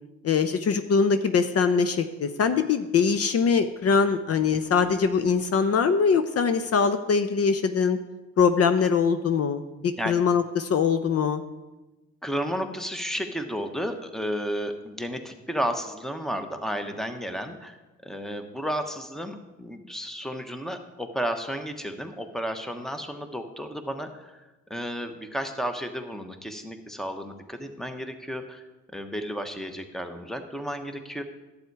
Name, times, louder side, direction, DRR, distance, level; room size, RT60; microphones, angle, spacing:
voice 1, 0.2-8.0 8.4-11.4, left 5 dB, 50° left, 10 dB, 0.7 m, -22 dB
voice 2, 12.2-17.8 18.0-24.3 24.7-28.6 28.9-31.2, equal, ahead, 7 dB, 1.1 m, -32 dB
11.5 x 8.2 x 4.7 m, 1.1 s
cardioid pair, 90°, 30 cm